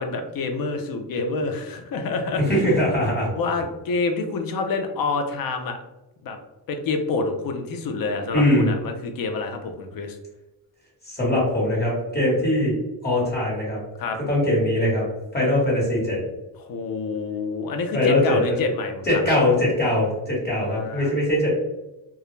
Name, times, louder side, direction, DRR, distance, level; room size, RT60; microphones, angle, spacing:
voice 1, 0.0-2.4 3.3-5.8 6.2-6.4 6.7-10.2 14.0-14.2 16.6-19.4 20.6-21.1, left 3 dB, 55° left, 5 dB, 0.5 m, -27 dB
voice 2, 2.4-3.3 8.3-8.7 11.0-12.7 13.0-13.8 14.3-15.1 15.3-16.2 17.9-18.6 19.0-21.5, left 1 dB, 25° left, -5 dB, 1.3 m, -21 dB
2.3 x 2.0 x 3.0 m, 0.99 s
cardioid pair, 105°, 42 cm